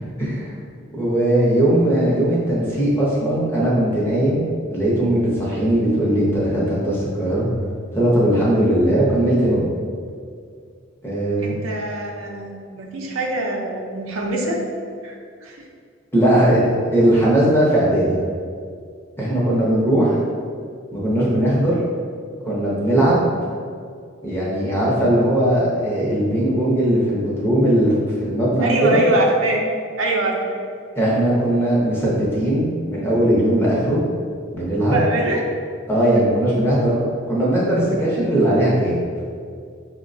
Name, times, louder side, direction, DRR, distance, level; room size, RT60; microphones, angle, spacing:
voice 1, 0.2-0.5 0.9-7.5 7.9-9.6 11.0-11.5 16.1-16.6 16.9-18.2 19.2-20.2 20.9-21.8 22.5-23.3 24.2-27.9 28.2-29.0 30.9-34.0 34.5-35.0 35.9-37.0 37.3-39.0, right 1 dB, 10° left, -6 dB, 0.7 m, -19 dB
voice 2, 11.4-14.6 15.0-15.7 28.6-29.6 30.0-30.6 34.9-35.4, right 1 dB, 90° right, 0 dB, 0.5 m, -23 dB
5.4 x 2.1 x 2.6 m, 2.2 s
head